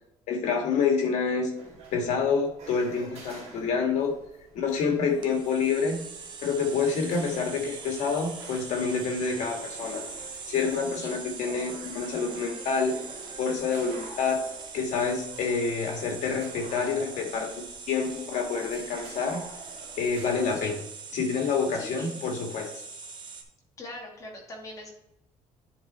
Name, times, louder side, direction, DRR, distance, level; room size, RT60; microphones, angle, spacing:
voice 1, 0.3-1.5 1.9-4.1 4.5-6.1 6.4-10.0 10.4-12.9 13.4-14.4 14.7-17.5 17.9-19.4 20.0-20.8 21.1-22.7, left 5 dB, 75° left, 2 dB, 2.1 m, -27 dB
sound 1, 1.6-20.6, right 3 dB, 65° right, 2.5 m, -48 dB
voice 2, 4.9-5.5 11.0-11.2 20.5-20.7 21.7-22.2 23.8-24.9, left 2 dB, 25° left, -2 dB, 2.3 m, -43 dB
sound 2, 5.2-23.4, right 5 dB, 40° right, 1.1 m, -42 dB
10.5 x 4.1 x 4.3 m, 0.84 s
cardioid pair, 170°, 12 cm